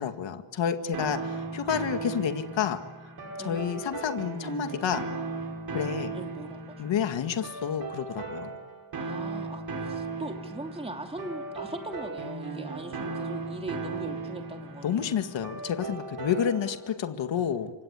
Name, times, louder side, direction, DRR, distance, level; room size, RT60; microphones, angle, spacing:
voice 1, 0.0-2.8 3.4-5.1 5.7-6.1 6.8-8.5 14.8-17.7, left 8 dB, 60° left, 8 dB, 2.1 m, -29 dB
sound 1, 0.9-16.9, right 3 dB, 45° right, 5.4 m, -37 dB
voice 2, 1.1-1.6 3.4-3.7 6.1-6.9 9.0-15.2, right 2 dB, 10° right, 4 dB, 3.0 m, -40 dB
28.5 x 24.5 x 8.3 m, 1.2 s
wide cardioid pair, 170°, 49 cm